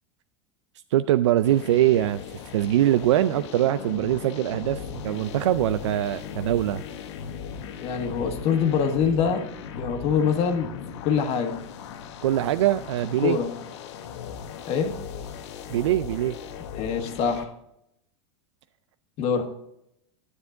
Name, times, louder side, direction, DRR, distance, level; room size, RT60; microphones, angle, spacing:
voice 1, 0.9-6.8 12.2-13.4 15.7-16.4, right 13 dB, 90° right, 12 dB, 0.4 m, -23 dB
sound 1, 1.4-17.4, left 7 dB, 75° left, 1.1 m, -38 dB
voice 2, 7.8-9.4 9.8-10.7 11.0-11.6 13.2-13.5 14.7-15.0 16.8-17.5 19.2-19.5, left 6 dB, 45° left, 5 dB, 1.5 m, -24 dB
9.6 x 8.3 x 3.8 m, 0.78 s
supercardioid pair, 125°, 15 cm